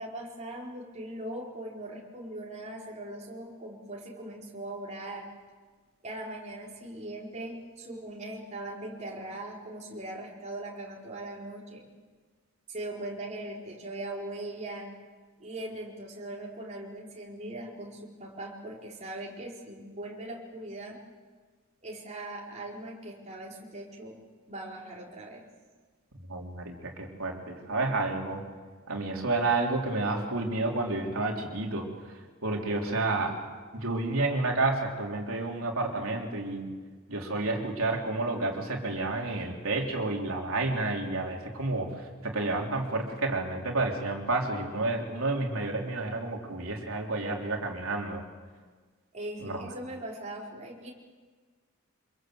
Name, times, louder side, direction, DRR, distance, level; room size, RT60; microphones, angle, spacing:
voice 1, 0.0-5.3 6.0-11.8 12.7-14.9 15.4-21.0 21.8-24.2 24.5-25.4 49.1-50.9, right 1 dB, 35° right, -3 dB, 4.6 m, -40 dB
voice 2, 26.2-28.4 28.9-31.9 32.4-33.4 33.7-36.7 37.1-41.9 42.2-48.2 49.4-49.6, right 2 dB, 75° right, 0 dB, 3.7 m, -30 dB
26.0 x 22.5 x 7.9 m, 1.5 s
head